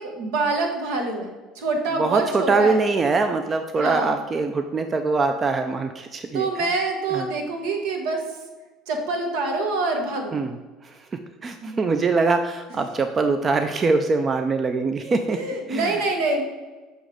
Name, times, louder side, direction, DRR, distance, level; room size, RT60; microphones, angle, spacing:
voice 1, 0.0-2.8 3.8-4.1 6.3-8.3 8.9-10.4 11.6-11.7 15.3-16.4, right 3 dB, 75° right, 3 dB, 1.1 m, -26 dB
voice 2, 1.9-6.6 7.1-7.3 10.3-10.5 10.8-15.4 15.7-16.0, right 4 dB, 35° right, 7 dB, 0.4 m, -23 dB
6.4 x 3.1 x 5.0 m, 1.2 s
hypercardioid pair, 70°, 0 cm